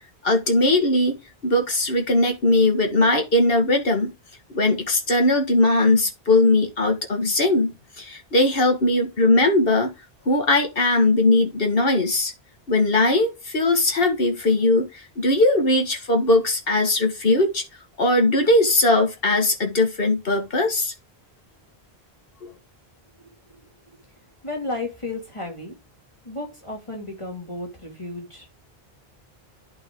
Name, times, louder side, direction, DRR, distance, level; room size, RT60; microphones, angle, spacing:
voice 1, 0.2-4.1 4.5-9.9 10.3-12.3 12.7-17.6 18.0-20.9 22.4-22.5, left 2 dB, 65° left, 2.0 m, -20 dB
voice 2, 23.2-23.6 24.4-25.7 26.2-28.5, left 2 dB, 30° left, 2.7 m, -33 dB
11.5 x 5.5 x 3.8 m
omnidirectional pair, 1.1 m